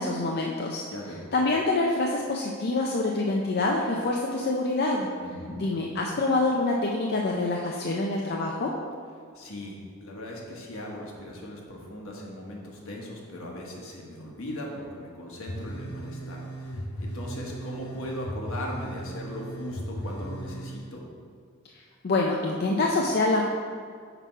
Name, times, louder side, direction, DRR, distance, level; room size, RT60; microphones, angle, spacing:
voice 1, 0.0-0.8 1.3-5.1 5.6-8.7 22.0-23.4, left 2 dB, 50° left, -1 dB, 0.5 m, -26 dB
voice 2, 0.9-1.2 5.2-5.6 9.3-21.0, left 1 dB, 70° left, -1 dB, 1.3 m, -39 dB
sound 1, 15.5-20.8, right 1 dB, 85° left, 1.0 m, -36 dB
6.0 x 5.9 x 4.5 m, 2.1 s
head